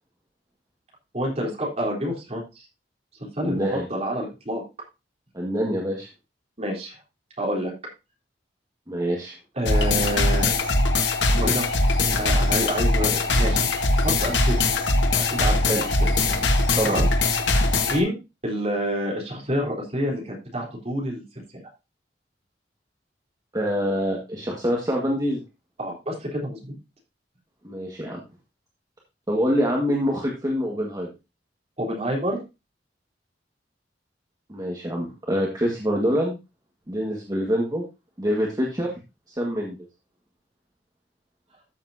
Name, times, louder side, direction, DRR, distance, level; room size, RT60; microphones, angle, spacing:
voice 1, 1.1-2.7 3.3-4.6 6.6-7.0 7.4-7.7 9.6-10.5 11.3-11.7 12.2-13.6 14.0-14.7 15.3-15.9 16.8-17.1 17.8-18.1 18.4-21.2 21.5-21.6 25.8-26.8 31.8-32.4, equal, 35° right, -1 dB, 3.8 m, -28 dB
voice 2, 3.4-3.9 5.3-6.1 8.9-9.3 15.7-15.8 16.8-17.0 23.5-25.4 27.6-28.2 29.3-31.1 34.5-36.4 36.9-37.8 38.2-38.9 39.3-39.8, equal, 20° right, -1 dB, 1.7 m, -25 dB
sound 1, 9.6-18.0, left 2 dB, 90° left, 1.6 m, -21 dB
13.5 x 7.3 x 2.8 m, 0.26 s
head